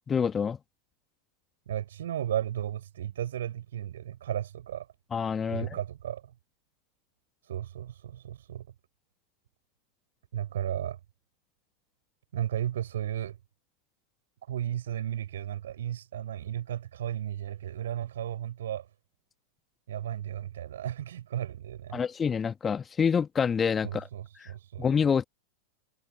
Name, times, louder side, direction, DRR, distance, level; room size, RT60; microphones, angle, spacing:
voice 1, 0.1-0.6 5.1-5.7 21.9-24.1 24.4-24.5 24.8-25.2, left 6 dB, 20° left, 2.0 m, -27 dB
voice 2, 1.7-4.9 5.5-6.3 7.5-8.7 10.3-11.0 12.3-13.4 14.5-18.9 19.9-22.0 23.8-24.9, right 11 dB, 60° right, 7.0 m, -34 dB
figure-of-eight pair, 90°, 0 cm